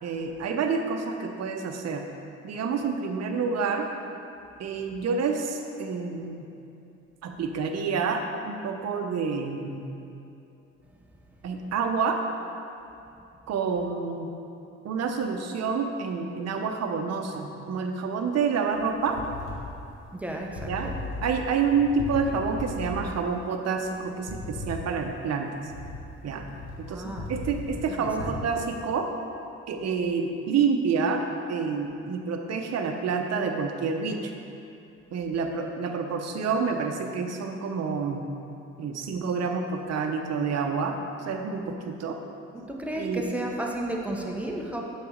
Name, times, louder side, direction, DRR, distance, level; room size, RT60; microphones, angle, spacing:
voice 1, 0.0-2.1 2.4-3.9 4.6-6.5 7.2-9.9 11.4-12.2 13.5-14.3 14.8-19.2 20.7-20.9 21.2-25.5 26.2-26.5 26.9-27.0 27.3-29.1 29.7-31.2 31.5-34.3 35.1-38.2 38.8-42.2 43.0-43.3, right 5 dB, 60° right, 4 dB, 0.7 m, -28 dB
sound 1, 18.7-28.3, left 2 dB, 90° left, 1.3 m, -37 dB
voice 2, 20.1-21.0 26.8-27.3 27.7-28.4 42.7-44.8, right 1 dB, 5° right, -1 dB, 0.8 m, -33 dB
6.8 x 4.0 x 5.0 m, 2.7 s
cardioid pair, 90°, 30 cm